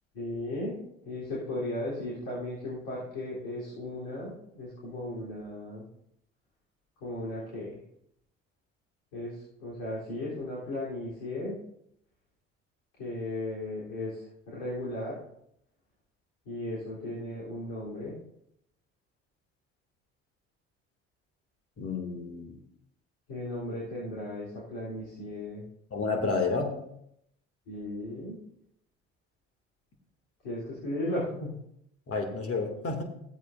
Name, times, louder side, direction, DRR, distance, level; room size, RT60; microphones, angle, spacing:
voice 1, 0.1-0.8 1.0-5.9 7.0-7.7 9.1-11.6 13.0-15.2 16.5-18.2 23.3-25.6 27.7-28.4 30.4-31.6, left 1 dB, 75° left, -7 dB, 3.8 m, -36 dB
voice 2, 21.8-22.6 25.9-26.8 32.1-33.0, left 4 dB, 45° left, 3 dB, 2.5 m, -30 dB
16.5 x 8.2 x 2.7 m, 0.75 s
hypercardioid pair, 55°, 34 cm